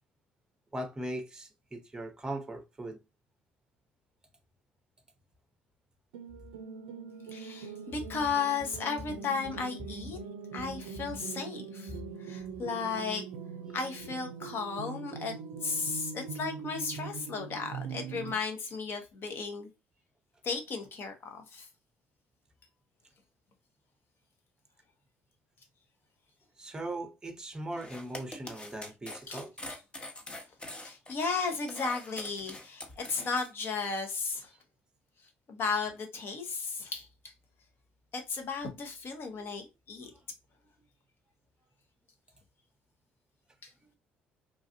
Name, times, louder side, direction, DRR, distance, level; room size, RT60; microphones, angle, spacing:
voice 1, 0.7-3.0 26.6-29.5 39.3-39.5 40.0-40.1, right 1 dB, 15° right, 0.8 m, -39 dB
sound 1, 6.1-18.4, right 5 dB, 85° right, 0.4 m, -42 dB
voice 2, 7.3-10.2 10.5-11.9 12.2-13.2 13.7-15.3 15.6-19.7 20.4-21.7 29.3-29.4 30.8-34.5 35.5-37.1 38.1-40.1 43.6-43.7, left 5 dB, 55° left, 1.0 m, -34 dB
sound 2, 27.7-33.5, left 1 dB, 25° left, 0.9 m, -44 dB
3.2 x 2.4 x 2.5 m
hypercardioid pair, 65°, 5 cm